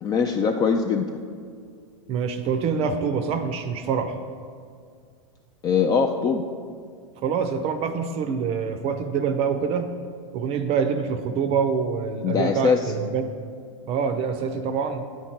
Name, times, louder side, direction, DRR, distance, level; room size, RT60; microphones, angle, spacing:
voice 1, 0.0-1.2 5.6-6.5 12.2-12.9, left 6 dB, 25° left, 4 dB, 0.3 m, -22 dB
voice 2, 2.1-4.2 7.2-9.9 10.3-13.3 13.9-15.0, right 6 dB, 40° right, 9 dB, 0.5 m, -25 dB
9.4 x 4.4 x 4.4 m, 2.1 s
hypercardioid pair, 105°, 17 cm